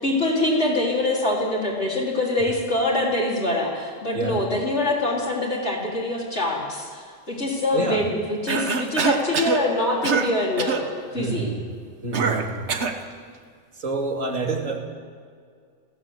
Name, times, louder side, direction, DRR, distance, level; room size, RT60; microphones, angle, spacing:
voice 1, 0.0-11.5, left 2 dB, 60° left, -3 dB, 4.4 m, -24 dB
voice 2, 7.7-8.1 11.1-11.7 12.0-12.7 13.8-14.8, right 3 dB, 80° right, 2 dB, 2.7 m, -28 dB
Cough, 8.5-9.6 10.0-10.3 10.6-10.9 12.1-13.0, right 5 dB, 60° right, 1.5 m, -24 dB
21.0 x 16.0 x 8.1 m, 2.1 s
omnidirectional pair, 1.3 m